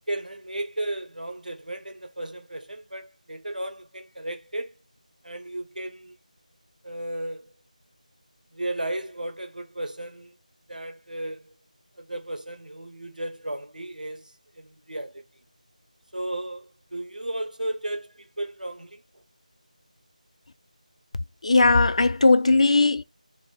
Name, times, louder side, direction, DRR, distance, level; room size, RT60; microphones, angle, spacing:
voice 1, 0.1-4.7 5.2-6.2 6.8-7.5 8.5-10.4 10.7-11.5 12.0-15.2 16.1-19.0, right 1 dB, 90° right, 0.9 m, -34 dB
voice 2, 21.4-23.0, left 3 dB, 50° left, 0.3 m, -18 dB
2.9 x 2.5 x 3.6 m
figure-of-eight pair, 170°, 4 cm